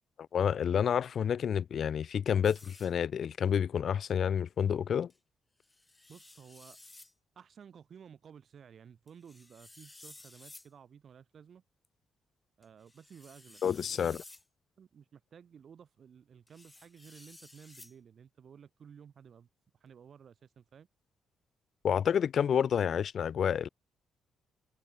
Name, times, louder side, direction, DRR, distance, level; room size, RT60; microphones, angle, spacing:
voice 1, 0.3-5.1 13.6-14.2 21.8-23.7, left 8 dB, 55° left, 0.6 m, -29 dB
sound 1, 2.4-2.9 5.1-5.2 5.6-7.1 9.1-10.7 11.8-11.9 12.6-14.4 16.5-17.9, left 2 dB, 15° left, 4.8 m, -54 dB
voice 2, 6.1-6.8 7.4-11.6 12.6-13.6 13.9-14.2 14.8-19.5 19.8-20.9, right 7 dB, 50° right, 4.2 m, -54 dB
cardioid pair, 115°, 0 cm